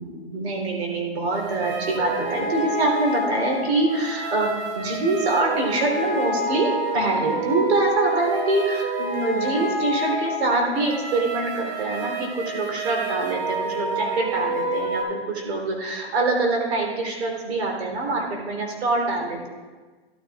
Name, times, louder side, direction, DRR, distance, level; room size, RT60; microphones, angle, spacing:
voice 1, 0.0-4.5 4.7-19.5, right 2 dB, 75° right, 0 dB, 3.4 m, -25 dB
sound 1, 1.3-15.0, right 1 dB, 35° right, 2.2 m, -28 dB
13.0 x 12.5 x 2.4 m, 1.4 s
hypercardioid pair, 125°, 33 cm